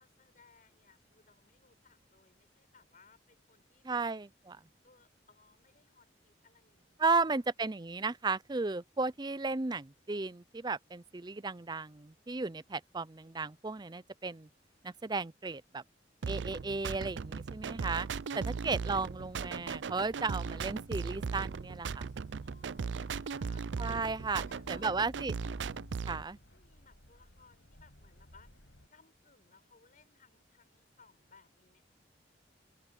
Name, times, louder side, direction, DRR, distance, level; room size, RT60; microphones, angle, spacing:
voice 1, 0.0-4.1 4.8-7.5 17.8-17.9 18.5-18.7 22.4-23.7 24.4-25.0 26.2-31.8, left 4 dB, 45° left, 5.1 m, -64 dB
voice 2, 3.8-4.6 7.0-14.5 14.8-15.8 16.3-18.1 18.3-22.1 23.8-25.3 26.1-26.4, right 3 dB, 25° right, 0.6 m, -34 dB
sound 1, 16.2-26.2, right 5 dB, 80° right, 0.5 m, -38 dB
sound 2, 17.7-28.9, equal, 85° left, 7.0 m, -55 dB
open air
head